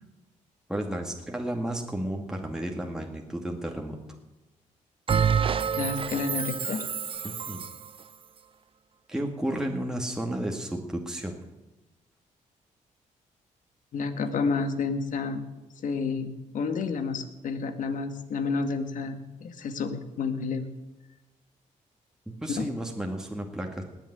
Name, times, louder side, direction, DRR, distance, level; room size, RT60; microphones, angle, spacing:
voice 1, 0.7-4.0 7.2-7.6 9.1-11.3 22.3-23.8, right 1 dB, 5° right, 1 dB, 2.1 m, -32 dB
Bell, 5.1-7.9, right 7 dB, 40° right, 0.6 m, -27 dB
voice 2, 5.8-6.8 13.9-15.4 15.8-20.7 22.5-22.7, left 4 dB, 70° left, 8 dB, 2.0 m, -30 dB
19.0 x 7.4 x 10.0 m, 1.0 s
cardioid pair, 80°, 14 cm